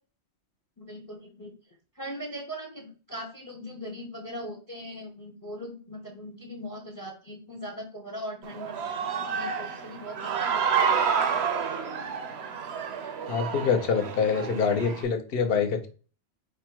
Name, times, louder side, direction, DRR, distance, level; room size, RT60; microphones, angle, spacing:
voice 1, 0.8-1.5 2.0-8.8 9.1-11.4, equal, 20° left, 3 dB, 0.6 m, -40 dB
Human voice / Cheering, 8.4-15.0, right 6 dB, 75° right, 0.9 m, -29 dB
voice 2, 13.3-15.9, left 6 dB, 65° left, 6 dB, 0.9 m, -25 dB
5.0 x 2.1 x 4.4 m, 0.37 s
omnidirectional pair, 1.1 m